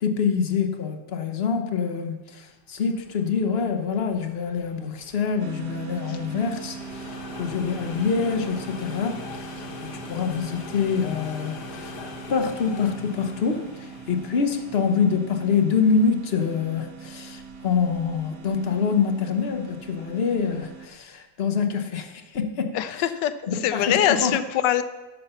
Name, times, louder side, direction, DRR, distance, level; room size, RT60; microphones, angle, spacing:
voice 1, 0.0-9.5 9.8-12.0 12.3-23.0 23.4-24.4, left 5 dB, 45° left, 6 dB, 0.9 m, -26 dB
sound 1, 2.7-21.0, left 4 dB, 70° left, 1.6 m, -43 dB
sound 2, 5.4-20.9, right 6 dB, 65° right, 1.0 m, -41 dB
voice 2, 22.7-23.3 23.6-24.8, left 11 dB, 85° left, 12 dB, 1.3 m, -23 dB
11.0 x 6.8 x 5.6 m, 1.2 s
omnidirectional pair, 1.9 m